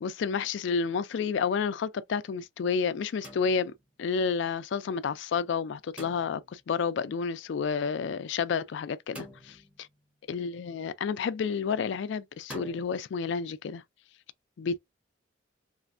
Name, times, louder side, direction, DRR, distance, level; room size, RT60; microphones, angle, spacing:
voice 1, 0.0-3.7 4.0-9.6 10.3-13.8 14.6-14.8, left 6 dB, 65° left, 0.3 m, -30 dB
sound 1, 3.2-4.0 6.0-6.7 9.1-10.0 12.5-12.8, equal, 5° right, 1.0 m, -46 dB
3.3 x 2.5 x 2.4 m
head